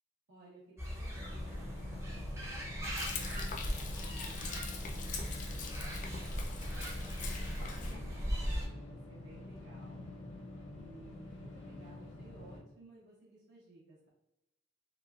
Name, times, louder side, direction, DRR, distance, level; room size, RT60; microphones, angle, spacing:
voice 1, 0.3-2.6 3.2-10.1 10.7-14.1, right 2 dB, 85° right, -8 dB, 0.8 m, -58 dB
sound 1, 0.8-8.7, equal, 15° right, 0.5 m, -39 dB
sound 2, 1.1-12.6, left 1 dB, 80° left, 0.7 m, -48 dB
Frying (food), 3.0-8.0, left 3 dB, 40° left, 0.3 m, -41 dB
2.9 x 2.1 x 2.3 m, 0.93 s
head